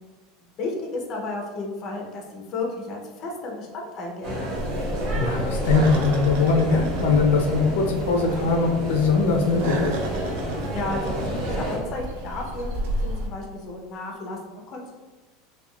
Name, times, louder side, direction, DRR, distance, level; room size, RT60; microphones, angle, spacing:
voice 1, 0.6-4.4 10.7-12.7 13.0-14.9, left 2 dB, 30° left, 0 dB, 0.4 m, -33 dB
sound 1, 4.2-11.8, equal, 45° right, 0.8 m, -30 dB
sound 2, 4.5-13.3, right 1 dB, 65° right, 0.4 m, -32 dB
voice 2, 5.1-10.0, left 4 dB, 90° left, 2 dB, 0.5 m, -21 dB
3.5 x 2.2 x 2.2 m, 1.2 s
supercardioid pair, 175°, 0 cm